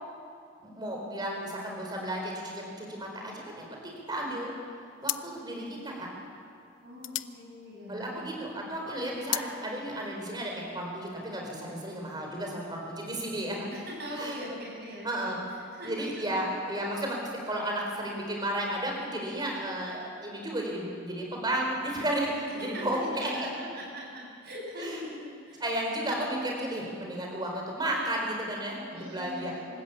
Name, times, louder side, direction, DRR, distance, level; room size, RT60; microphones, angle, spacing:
voice 1, 0.6-4.5 5.0-6.1 7.9-13.7 14.1-14.4 15.0-15.4 15.8-17.2 17.5-23.5 24.7-25.0 25.6-28.8 29.1-29.5, right 1 dB, 20° right, -1 dB, 4.4 m, -33 dB
sound 1, 4.3-4.6 5.0-8.4 8.7-9.6, left 15 dB, 65° left, 0.6 m, -36 dB
voice 2, 6.8-8.4 13.7-15.3 15.7-16.4 22.6-25.6 25.9-26.2 28.9-29.7, equal, 50° right, -3 dB, 7.8 m, -41 dB
25.5 x 14.0 x 8.5 m, 2.3 s
head